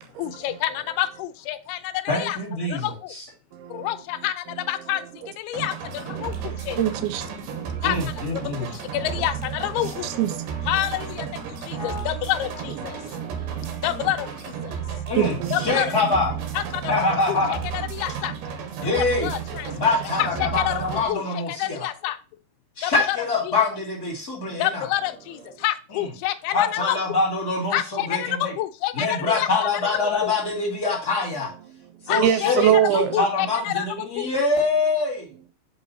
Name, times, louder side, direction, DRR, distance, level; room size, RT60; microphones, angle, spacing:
voice 1, 0.2-3.1 3.7-6.8 7.8-10.1 10.7-13.0 13.8-14.8 15.5-15.9 16.5-17.4 17.7-18.3 18.8-22.2 22.8-23.5 24.6-27.0 27.7-29.7 30.2-30.3 32.1-34.3, left 14 dB, 85° left, 2.6 m, -28 dB
voice 2, 2.1-3.2 7.8-8.7 11.8-12.0 15.1-16.3 16.9-17.6 18.8-19.3 19.8-21.9 22.8-24.9 25.9-26.0 26.5-28.5 28.9-31.5 32.0-35.3, left 3 dB, 30° left, 2.5 m, -25 dB
voice 3, 3.5-3.9 6.8-7.8 10.2-10.3 12.9-13.5 15.2-15.5 18.8-18.9 24.5-24.6 32.2-33.2, right 11 dB, 85° right, 2.5 m, -24 dB
sound 1, 5.5-21.1, right 7 dB, 70° right, 2.7 m, -33 dB
6.1 x 5.2 x 4.0 m
omnidirectional pair, 4.5 m